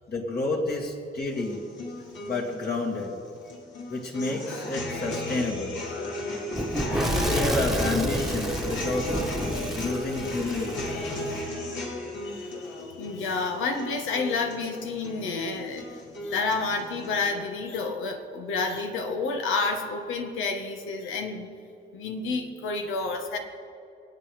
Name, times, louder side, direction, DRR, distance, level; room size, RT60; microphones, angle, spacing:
voice 1, 0.1-1.6 2.2-3.1 3.9-5.8 6.9-9.1 9.8-11.0, left 2 dB, 50° left, -1 dB, 2.7 m, -30 dB
sound 1, 1.3-17.3, left 1 dB, 70° left, 3.1 m, -35 dB
Fire / Explosion, 6.5-11.4, right 1 dB, ahead, 1.3 m, -30 dB
voice 2, 12.2-15.9 16.2-21.5 21.9-23.4, left 4 dB, 90° left, 4 dB, 1.7 m, -30 dB
25.5 x 8.8 x 5.1 m, 2.6 s
cardioid pair, 90°, 20 cm